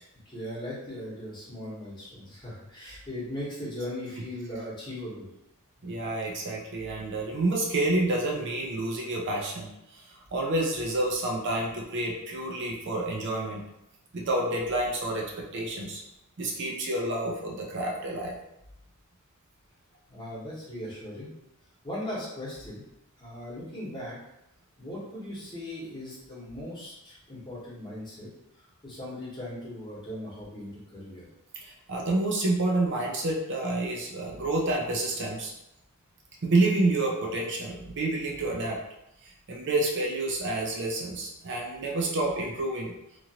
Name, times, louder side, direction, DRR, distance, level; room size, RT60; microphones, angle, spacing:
voice 1, 0.2-5.3 20.1-21.3 21.8-22.8 23.2-24.2 24.8-28.3 28.8-31.3, left 1 dB, 20° left, -7 dB, 1.0 m, -38 dB
voice 2, 5.8-13.6 14.1-16.0 16.4-18.3 31.6-35.5 36.4-38.8 39.5-42.9, right 2 dB, 55° right, -1 dB, 0.5 m, -29 dB
2.9 x 2.5 x 2.8 m, 0.85 s
head